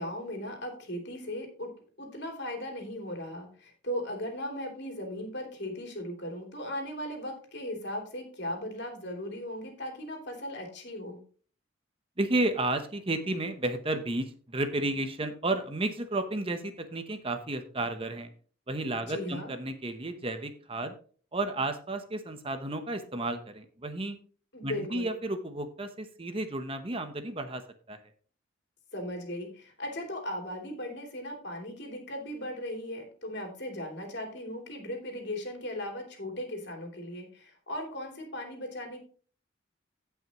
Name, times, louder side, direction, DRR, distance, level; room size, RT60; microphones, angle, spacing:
voice 1, 0.0-1.7 2.0-11.2 19.1-19.5 24.5-25.1 28.9-39.0, left 1 dB, 60° left, 2 dB, 3.2 m, -37 dB
voice 2, 12.2-18.3 18.7-20.9 21.3-24.2 24.6-27.6 27.9-28.0, right 2 dB, 30° right, 8 dB, 0.9 m, -32 dB
16.5 x 5.8 x 3.0 m, 0.42 s
head